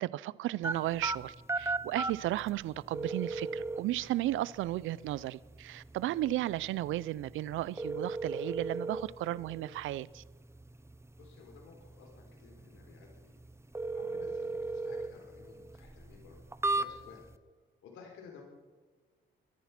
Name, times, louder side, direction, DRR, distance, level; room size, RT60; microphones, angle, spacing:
voice 1, 0.0-10.2, right 15 dB, 80° right, 0.5 m, -34 dB
sound 1, 0.6-17.4, right 3 dB, 15° right, 0.8 m, -38 dB
voice 2, 11.2-13.4 13.9-17.2 17.8-18.4, left 5 dB, 85° left, 3.7 m, -54 dB
23.0 x 10.5 x 5.9 m
cardioid pair, 90°, 20 cm